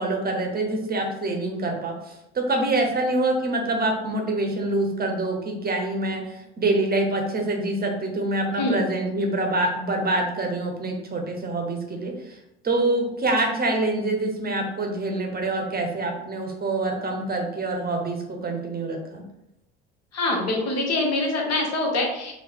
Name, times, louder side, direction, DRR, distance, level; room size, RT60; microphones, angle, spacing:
voice 1, 0.0-12.4 12.6-19.2, right 2 dB, 30° right, 2 dB, 0.8 m, -26 dB
voice 2, 20.1-22.3, left 2 dB, 50° left, 0 dB, 1.0 m, -24 dB
3.0 x 2.1 x 3.5 m, 0.84 s
hypercardioid pair, 60°, 32 cm